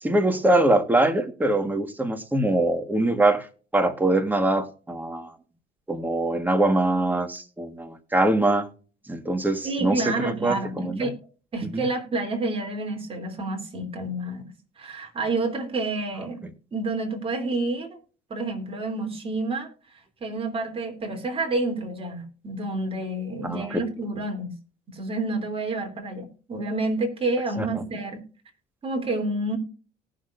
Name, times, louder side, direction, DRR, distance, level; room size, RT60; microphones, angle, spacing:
voice 1, 0.0-3.5 3.7-5.3 5.9-8.7 9.1-11.1 11.7-11.8 16.4-16.5 23.4-23.8 27.6-27.7, right 2 dB, 10° right, 1.6 m, -23 dB
voice 2, 9.6-11.1 11.5-16.4 16.7-18.0 18.3-19.7 20.2-24.6 24.9-28.2 28.8-29.6, right 2 dB, 35° right, 3.2 m, -29 dB
18.5 x 6.4 x 2.6 m
cardioid pair, 110°, 17 cm